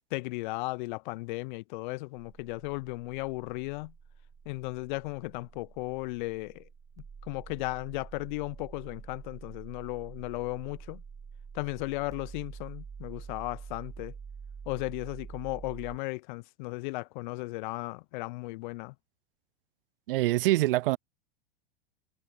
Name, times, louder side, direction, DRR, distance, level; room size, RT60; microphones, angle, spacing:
voice 1, 0.0-3.9 4.5-6.6 7.3-11.0 11.5-14.1 14.7-18.9, left 24 dB, 50° left, 0.5 m, -36 dB
sound 1, 2.1-16.0, right 6 dB, 10° right, 0.5 m, -47 dB
voice 2, 20.1-21.0, right 17 dB, 65° right, 0.5 m, -24 dB
hypercardioid pair, 95°, 31 cm